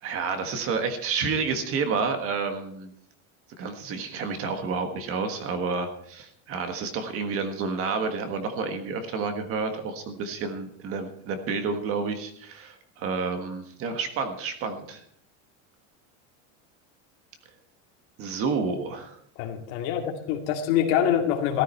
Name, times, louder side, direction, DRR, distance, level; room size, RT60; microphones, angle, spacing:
voice 1, 0.0-2.9 3.6-15.0 18.2-19.2, right 5 dB, 35° right, 7 dB, 1.5 m, -30 dB
voice 2, 19.4-21.6, left 9 dB, 55° left, 3 dB, 2.3 m, -25 dB
14.5 x 13.0 x 4.4 m, 0.67 s
cardioid pair, 165°, 37 cm